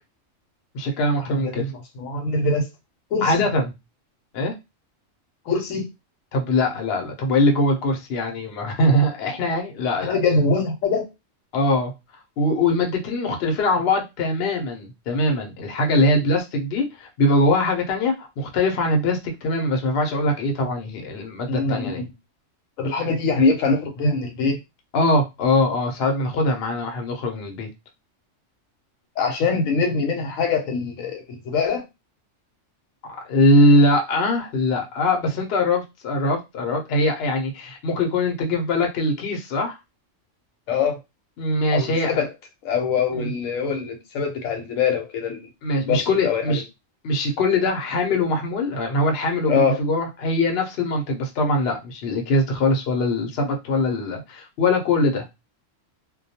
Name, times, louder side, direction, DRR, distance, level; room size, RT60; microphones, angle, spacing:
voice 1, 0.7-1.6 3.2-3.7 4.3-4.5 6.3-10.1 11.5-11.9 12.4-22.0 24.9-27.7 33.3-39.8 41.4-42.1 43.1-43.3 45.6-46.6 47.0-55.2, left 1 dB, 60° left, 2 dB, 0.8 m, -22 dB
voice 2, 2.0-2.7 3.1-3.4 5.5-5.8 10.0-11.1 21.5-22.0 22.8-24.6 29.2-31.8 40.7-41.0 41.7-42.3 42.6-45.4 45.9-46.6 49.5-49.8, left 4 dB, 90° left, 4 dB, 1.0 m, -23 dB
2.2 x 2.2 x 2.7 m, 0.23 s
omnidirectional pair, 1.3 m